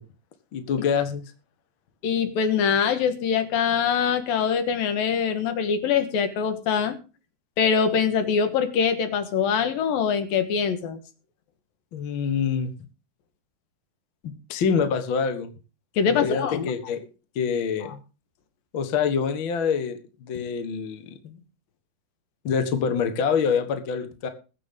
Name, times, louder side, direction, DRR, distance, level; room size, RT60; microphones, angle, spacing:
voice 1, 0.5-1.2 11.9-12.7 14.2-15.5 16.0-17.0 17.3-18.0 18.7-21.4 22.4-24.3, left 6 dB, 50° left, 8 dB, 1.5 m, -26 dB
voice 2, 2.0-7.0 7.6-11.0 16.0-16.7, left 6 dB, 70° left, 9 dB, 3.0 m, -23 dB
21.5 x 8.2 x 3.7 m, 0.32 s
omnidirectional pair, 4.5 m